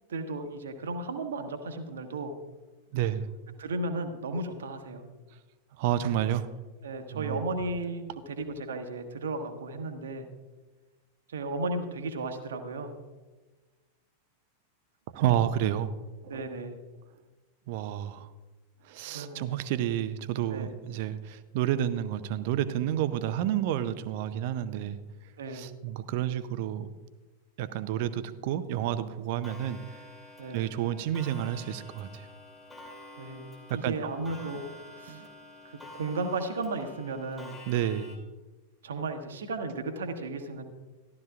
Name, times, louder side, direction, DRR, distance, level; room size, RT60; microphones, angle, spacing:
voice 1, 0.1-2.3 3.6-5.1 6.8-10.3 11.3-12.9 16.3-16.8 19.1-19.5 20.5-20.7 25.4-25.7 30.4-30.6 33.2-34.6 35.0-35.2 35.6-37.5 38.8-40.6, right 2 dB, 65° right, 7 dB, 1.1 m, -34 dB
voice 2, 2.9-3.2 5.8-6.5 7.1-7.4 15.1-15.9 16.3-16.4 17.7-18.3 18.8-25.0 25.5-26.9 27.6-29.8 30.5-32.3 33.7-33.9 35.1-35.3 37.7-38.1, right 11 dB, 50° right, 13 dB, 0.6 m, -30 dB
Clock, 29.4-38.2, left 1 dB, 10° left, 2.6 m, -48 dB
14.5 x 12.0 x 2.4 m, 1.2 s
figure-of-eight pair, 90°, 0 cm